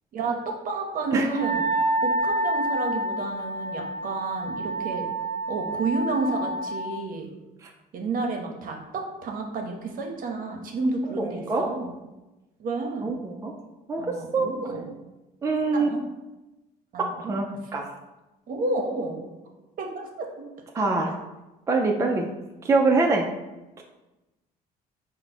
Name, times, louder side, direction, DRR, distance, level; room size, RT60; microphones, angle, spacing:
voice 1, 0.1-1.6 2.0-5.1 5.5-7.3 7.9-11.9 12.6-13.2 14.0-14.9 15.8-16.0 16.9-17.3 18.5-19.3 19.8-20.5, right 3 dB, 55° right, 2 dB, 0.8 m, -30 dB
Wind instrument woodwind instrument, 1.3-6.9, right 1 dB, 25° left, 1.0 m, -28 dB
voice 2, 11.2-11.7 13.0-13.5 13.9-14.5 15.4-15.9 17.0-17.5 17.7-17.9 20.7-21.2 21.7-22.3 22.6-23.3 23.8-23.9, right 3 dB, 20° right, 1 dB, 0.4 m, -24 dB
4.6 x 2.1 x 4.1 m, 1.0 s
cardioid pair, 110°, 17 cm